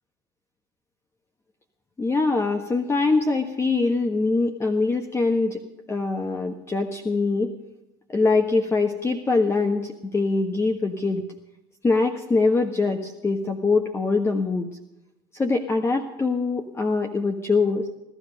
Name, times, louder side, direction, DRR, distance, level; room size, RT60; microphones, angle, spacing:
voice 1, 2.0-5.6 5.9-7.5 8.1-11.2 11.8-14.7 15.4-17.8, left 3 dB, 25° left, 4 dB, 1.4 m, -23 dB
17.5 x 12.5 x 5.3 m, 0.93 s
supercardioid pair, 80°, 12 cm